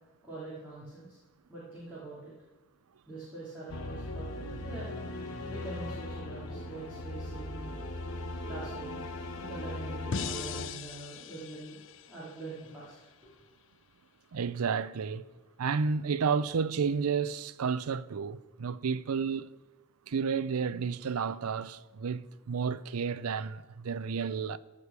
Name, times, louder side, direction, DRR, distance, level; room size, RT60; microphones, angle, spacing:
voice 1, 0.2-1.2 1.5-2.3 3.1-4.9 5.5-7.7 8.4-9.1 9.3-11.8 12.1-13.3 24.3-24.4, right 2 dB, 10° right, 3.1 m, -44 dB
sound 1, 3.7-10.7, left 2 dB, 80° left, 1.1 m, -39 dB
sound 2, 10.1-13.2, left 6 dB, 60° left, 0.4 m, -41 dB
voice 2, 14.3-15.2 15.6-19.5 20.1-24.6, right 6 dB, 90° right, 0.5 m, -31 dB
14.5 x 4.9 x 6.8 m
head